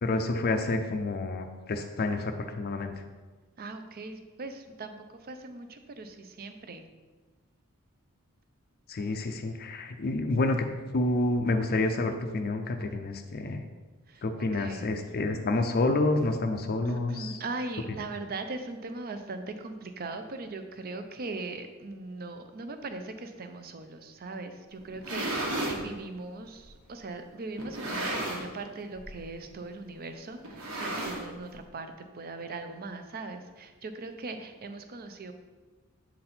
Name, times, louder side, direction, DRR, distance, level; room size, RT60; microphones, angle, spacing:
voice 1, 0.0-2.9 8.9-10.6 10.9-13.6 14.2-17.4, left 2 dB, 45° left, 6 dB, 0.5 m, -28 dB
voice 2, 3.6-6.9 14.1-14.2 14.5-14.9 15.1-15.2 16.8-35.3, right 3 dB, 45° right, 8 dB, 0.6 m, -40 dB
sound 1, 24.8-25.8 26.6-26.7 27.6-28.6 28.9-29.2 29.4-29.5 30.4-31.5, right 1 dB, 80° right, 1.5 m, -33 dB
7.7 x 4.1 x 4.3 m, 1.3 s
head